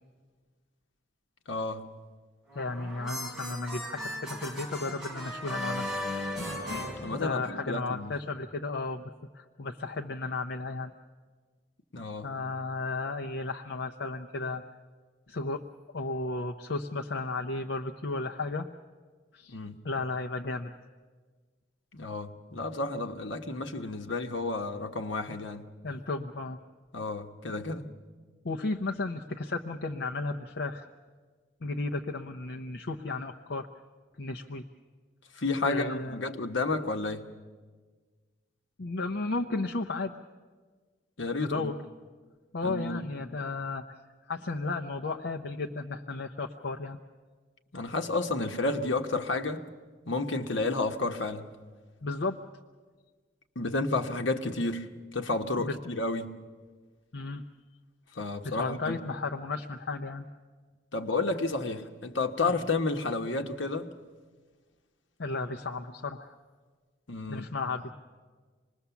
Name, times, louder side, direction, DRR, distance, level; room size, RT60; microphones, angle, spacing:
voice 1, 1.5-1.8 7.0-8.1 11.9-12.3 19.5-19.7 21.9-25.6 26.9-27.8 35.3-37.3 41.2-41.7 42.6-43.0 47.7-49.6 50.1-51.5 53.5-54.9 55.1-56.3 58.2-59.0 60.9-63.9 67.1-67.5, left 3 dB, 80° left, 6 dB, 1.3 m, -31 dB
voice 2, 2.5-5.9 7.1-10.9 12.2-14.6 15.3-15.6 15.9-18.7 19.3-19.6 19.8-20.7 25.8-26.6 28.4-30.8 31.6-33.7 34.2-34.6 35.6-36.2 38.8-40.1 41.4-41.7 42.5-44.0 44.3-47.0 52.0-52.4 55.6-55.7 57.1-57.4 58.4-60.2 65.2-66.3 67.3-67.9, left 3 dB, 65° left, 3 dB, 0.7 m, -34 dB
sound 1, 2.5-7.8, left 1 dB, 5° right, 3.8 m, -37 dB
26.5 x 20.0 x 7.1 m, 1.5 s
head